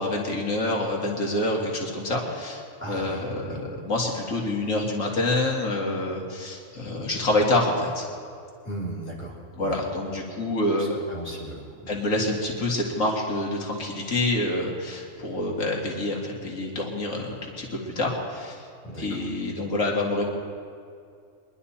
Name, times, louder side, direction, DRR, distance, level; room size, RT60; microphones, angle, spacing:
voice 1, 0.0-2.6 2.9-8.1 9.6-11.0 11.9-18.6 19.0-20.2, left 2 dB, 80° left, -1 dB, 2.4 m, -27 dB
voice 2, 2.8-3.2 3.5-3.6 8.6-9.8 10.8-11.9 18.8-19.2, right 2 dB, 10° right, -7 dB, 3.1 m, -37 dB
23.0 x 11.5 x 4.3 m, 2.3 s
omnidirectional pair, 1.4 m